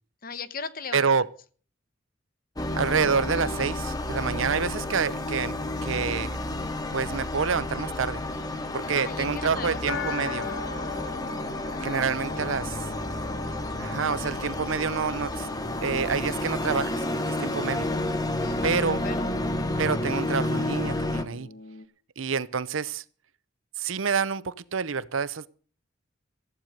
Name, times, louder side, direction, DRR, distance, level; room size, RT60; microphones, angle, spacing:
voice 1, 0.2-1.1 8.8-9.9 11.6-12.4 18.4-19.4, left 4 dB, 45° left, 1.0 m, -38 dB
voice 2, 0.9-1.3 2.7-5.6 5.8-6.4 6.9-8.2 8.7-10.5 11.8-12.8 13.8-15.5 15.8-17.9 18.6-19.0 19.8-21.5 22.2-23.0 23.8-25.5, right 6 dB, 80° right, 0.7 m, -28 dB
sound 1, 2.6-21.2, left 1 dB, 20° left, 1.1 m, -31 dB
sound 2, 9.9-21.9, left 3 dB, 75° left, 1.2 m, -40 dB
15.0 x 9.0 x 6.6 m
head